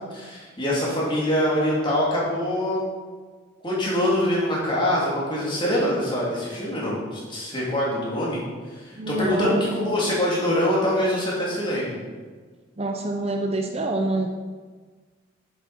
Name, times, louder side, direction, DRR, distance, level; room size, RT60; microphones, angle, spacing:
voice 1, 0.1-2.9 3.6-8.4 8.7-9.6 9.8-12.0, left 1 dB, 25° left, -5 dB, 3.3 m, -24 dB
voice 2, 9.0-9.9 12.8-14.3, right 2 dB, 30° right, 3 dB, 0.6 m, -26 dB
10.5 x 8.3 x 4.5 m, 1.5 s
head